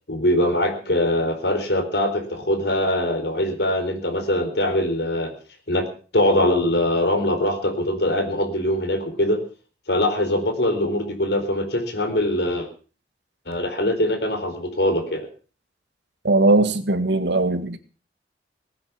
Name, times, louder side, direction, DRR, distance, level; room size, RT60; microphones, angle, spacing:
voice 1, 0.1-5.3 5.7-5.9 6.1-9.4 9.9-12.7 13.5-15.3, left 1 dB, 70° left, 6 dB, 4.2 m, -22 dB
voice 2, 16.2-17.8, right 2 dB, 90° right, 10 dB, 1.9 m, -19 dB
19.0 x 9.8 x 7.2 m, 0.39 s
head